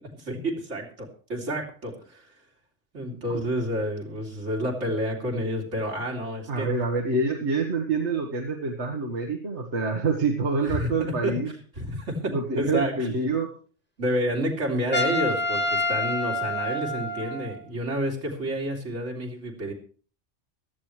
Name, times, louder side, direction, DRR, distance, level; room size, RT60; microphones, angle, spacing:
voice 1, 0.2-2.3 2.9-6.7 10.6-11.3 11.8-13.1 14.0-19.7, equal, 85° right, 0 dB, 3.3 m, -29 dB
voice 2, 6.5-11.5 12.2-13.5, right 3 dB, 70° right, 2 dB, 1.7 m, -26 dB
Trumpet, 14.9-17.6, left 1 dB, 10° left, 1.7 m, -27 dB
16.5 x 13.5 x 3.2 m, 0.40 s
omnidirectional pair, 1.2 m